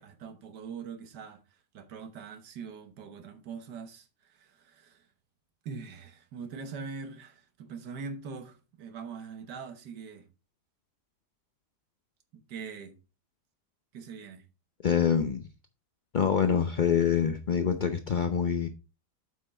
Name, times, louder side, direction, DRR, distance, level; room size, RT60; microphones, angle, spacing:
voice 1, 0.0-1.4 1.7-5.1 5.6-10.3 12.5-13.0 13.9-14.4, right 5 dB, 85° right, 1.7 m, -42 dB
voice 2, 14.8-15.5 16.1-18.7, left 7 dB, 55° left, 0.5 m, -25 dB
8.3 x 5.7 x 4.2 m
omnidirectional pair, 1.8 m